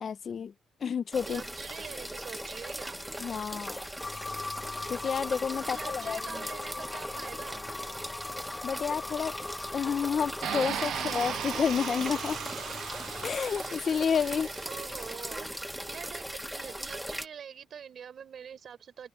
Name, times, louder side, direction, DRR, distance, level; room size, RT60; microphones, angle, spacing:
voice 1, 0.0-0.5 0.8-1.4 3.2-3.8 4.9-6.4 8.6-9.3 9.7-12.4 13.2-14.5, left 7 dB, 55° left, 0.9 m, -30 dB
sound 1, 1.1-17.3, equal, 5° right, 1.0 m, -39 dB
voice 2, 1.3-3.0 5.6-7.6 14.6-16.3 16.5-19.1, right 8 dB, 60° right, 5.0 m, -44 dB
sound 2, 4.0-13.4, left 3 dB, 30° left, 0.3 m, -41 dB
sound 3, 10.4-15.4, right 11 dB, 80° right, 0.4 m, -38 dB
open air
cardioid pair, 80°, 0 cm